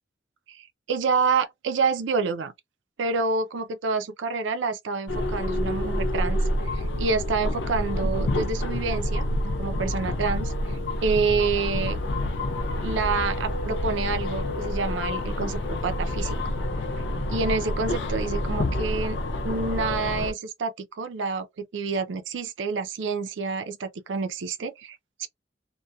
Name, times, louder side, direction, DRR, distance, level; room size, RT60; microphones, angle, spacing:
voice 1, 0.5-2.5 3.0-6.4 6.7-9.2 9.6-12.0 12.8-16.4 17.3-19.2 19.4-25.3, right 4 dB, 85° right, 0.4 m, -28 dB
sound 1, 5.1-20.3, left 1 dB, 70° left, 0.4 m, -28 dB
sound 2, 10.2-16.5, equal, 10° left, 0.3 m, -44 dB
2.2 x 2.1 x 2.6 m
head